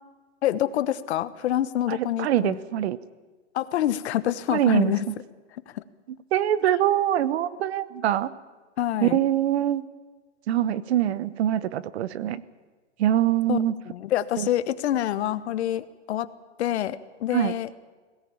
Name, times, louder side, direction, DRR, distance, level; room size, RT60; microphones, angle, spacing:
voice 1, 0.4-2.6 3.5-5.0 5.7-5.8 8.8-9.2 13.5-13.6 13.9-16.3 16.6-17.7, left 12 dB, 65° left, 14 dB, 1.2 m, -26 dB
voice 2, 1.9-3.0 4.5-5.1 6.3-8.3 9.0-9.8 10.5-12.4 13.0-13.7 14.4-14.5 17.3-17.5, right 11 dB, 60° right, 17 dB, 1.1 m, -24 dB
20.5 x 17.5 x 8.7 m, 1.4 s
hypercardioid pair, 150°, 35 cm